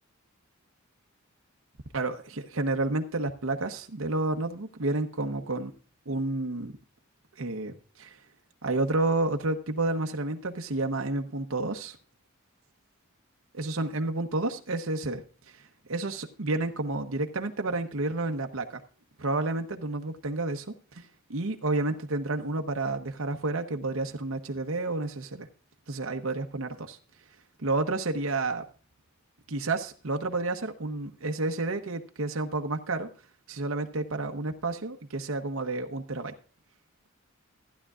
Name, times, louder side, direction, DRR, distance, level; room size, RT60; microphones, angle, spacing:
voice 1, 1.9-5.7 6.1-6.8 7.4-8.2 8.6-12.0 13.5-18.8 19.2-20.7 20.9-25.5 25.9-27.0 27.6-28.6 29.5-33.1 33.5-36.3, right 2 dB, 70° right, 5 dB, 0.9 m, -30 dB
15.0 x 10.5 x 2.4 m, 0.39 s
head